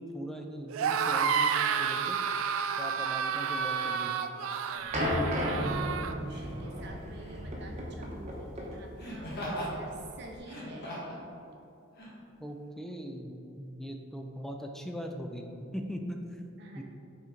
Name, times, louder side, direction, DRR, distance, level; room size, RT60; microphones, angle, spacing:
voice 1, 0.0-2.2 2.8-4.3 12.4-16.4 16.8-16.9, equal, ahead, 2 dB, 0.4 m, -40 dB
sound 1, 0.7-6.1, right 7 dB, 90° right, 0.3 m, -30 dB
Laughter, 4.8-4.9 6.3-6.6 9.0-9.7 10.4-11.2 11.9-12.1, equal, 55° left, 1.5 m, -38 dB
sound 2, 4.9-10.3, equal, 35° right, 1.0 m, -34 dB
voice 2, 5.1-11.0 16.6-16.8, right 2 dB, 60° right, 1 dB, 0.8 m, -49 dB
6.0 x 4.4 x 3.8 m, 2.8 s
head